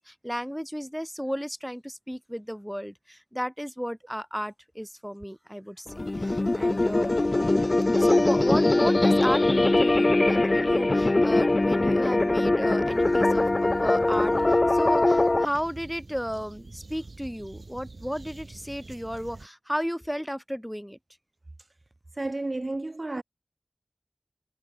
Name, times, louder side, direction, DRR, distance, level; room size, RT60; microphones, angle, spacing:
voice 1, 0.0-7.2 7.9-21.0, equal, ahead, 2.0 m, -33 dB
sound 1, 5.9-15.4, left 2 dB, 55° left, 0.4 m, -22 dB
sound 2, 12.8-19.5, right 3 dB, 90° right, 1.0 m, -45 dB
voice 2, 22.2-23.2, right 2 dB, 55° right, 0.3 m, -31 dB
wide cardioid pair, 50°, 0 cm